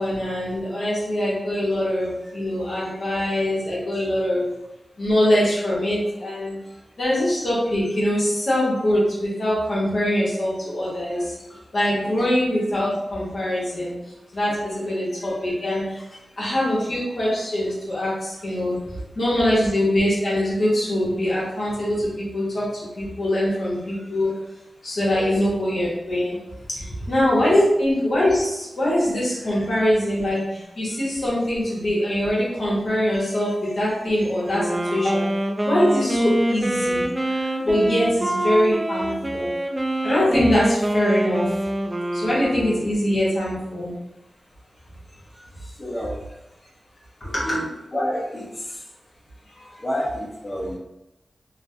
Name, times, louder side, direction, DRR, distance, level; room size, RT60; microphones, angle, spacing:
voice 1, 0.0-4.5 5.0-6.6 7.0-11.4 11.7-13.9 14.3-16.0 16.4-18.8 19.1-24.3 24.8-26.4 26.7-35.2 35.6-39.5 40.0-41.6 42.1-43.9 45.3-45.5 47.3-47.5, left 1 dB, 70° left, -7 dB, 1.1 m, -23 dB
Wind instrument woodwind instrument, 34.5-43.1, right 1 dB, 25° right, 0.4 m, -25 dB
voice 2, 45.6-46.2 47.2-47.6 47.9-48.8 49.5-50.8, equal, 40° left, -8 dB, 1.0 m, -30 dB
3.2 x 2.1 x 2.7 m, 0.91 s
cardioid pair, 45°, 0 cm